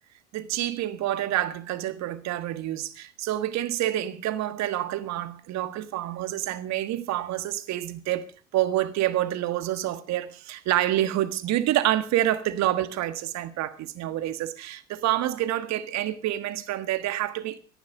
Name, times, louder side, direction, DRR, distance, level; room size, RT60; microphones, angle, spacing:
voice 1, 0.3-17.6, right 13 dB, 50° right, 1.5 m, -28 dB
14.5 x 11.0 x 6.5 m
hypercardioid pair, 70°, 34 cm